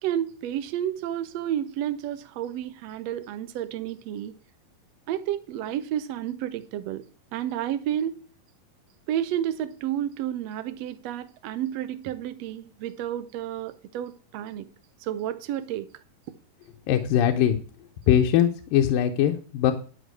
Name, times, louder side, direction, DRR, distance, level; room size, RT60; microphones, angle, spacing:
voice 1, 0.0-4.3 5.1-7.0 7.3-8.1 9.1-14.7 15.0-15.9, right 11 dB, 85° right, 1.4 m, -31 dB
voice 2, 16.9-17.6 18.1-19.7, left 10 dB, 80° left, 2.5 m, -21 dB
11.5 x 5.6 x 8.2 m
omnidirectional pair, 4.1 m